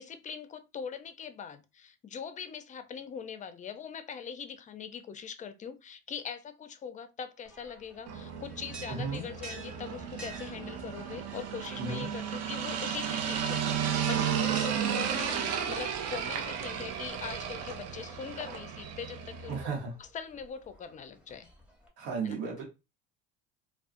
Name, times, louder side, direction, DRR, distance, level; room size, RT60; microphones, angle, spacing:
voice 1, 0.0-19.6 20.0-21.5 22.2-22.4, left 7 dB, 25° left, 0.4 m, -42 dB
sound 1, 7.5-21.9, right 2 dB, 5° right, 0.9 m, -51 dB
sound 2, 8.1-19.6, right 8 dB, 55° right, 0.6 m, -34 dB
voice 2, 8.9-9.2 11.8-12.1 19.5-19.9 22.0-22.6, right 4 dB, 80° right, 1.1 m, -34 dB
2.3 x 2.2 x 2.5 m
hypercardioid pair, 80°, 31 cm